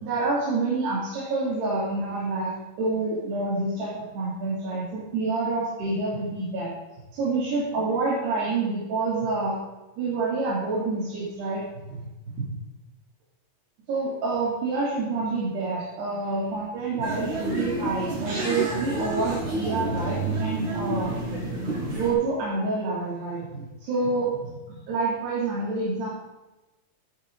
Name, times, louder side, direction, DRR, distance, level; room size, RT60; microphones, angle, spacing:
voice 1, 0.0-2.5 2.8-6.7 7.1-9.6 10.0-12.5 13.9-21.1 21.9-24.5 24.9-26.1, right 3 dB, 90° right, -7 dB, 4.8 m, -28 dB
sound 1, 17.0-22.1, right 2 dB, 70° right, 7.2 m, -29 dB
13.0 x 12.5 x 3.8 m, 1.1 s
omnidirectional pair, 4.5 m